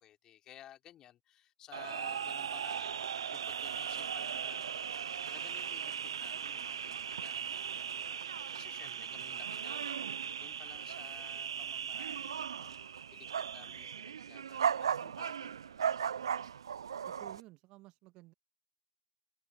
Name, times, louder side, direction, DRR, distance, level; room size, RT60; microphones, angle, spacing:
voice 1, 0.0-5.9 6.2-15.9, left 12 dB, 25° left, 3.2 m, -56 dB
sound 1, 1.7-17.4, right 8 dB, 70° right, 0.5 m, -37 dB
voice 2, 8.8-9.5 17.1-18.3, right 19 dB, 35° right, 1.5 m, -55 dB
figure-of-eight pair, 120°, 3 cm